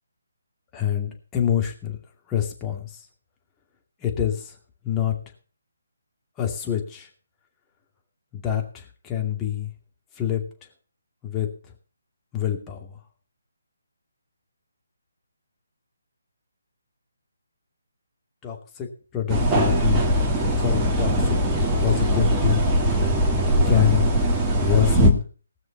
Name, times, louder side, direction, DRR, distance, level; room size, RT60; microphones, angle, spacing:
voice 1, 0.7-2.0 2.3-3.0 4.0-4.5 4.8-5.1 6.4-7.1 8.3-9.7 10.2-10.4 11.2-11.5 12.3-13.0 18.4-20.0 20.6-21.4 21.8-22.6 23.7-24.1 24.6-25.2, left 10 dB, 15° left, 1 dB, 2.5 m, -26 dB
sound 1, 19.3-25.1, equal, 15° right, 2.1 m, -20 dB
19.0 x 6.4 x 5.6 m, 0.39 s
figure-of-eight pair, 145°, 0 cm